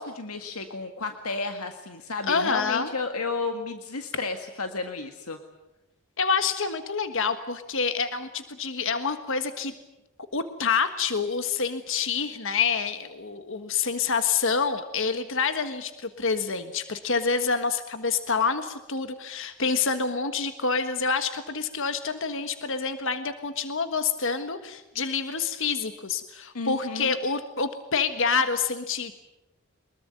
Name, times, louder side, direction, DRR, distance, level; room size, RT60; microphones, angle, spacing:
voice 1, 0.0-5.4 26.5-27.1, left 3 dB, 80° left, 6 dB, 1.8 m, -32 dB
voice 2, 2.3-2.9 6.2-9.7 10.3-29.1, left 5 dB, 60° left, 9 dB, 1.5 m, -27 dB
24.0 x 21.0 x 9.4 m, 0.93 s
head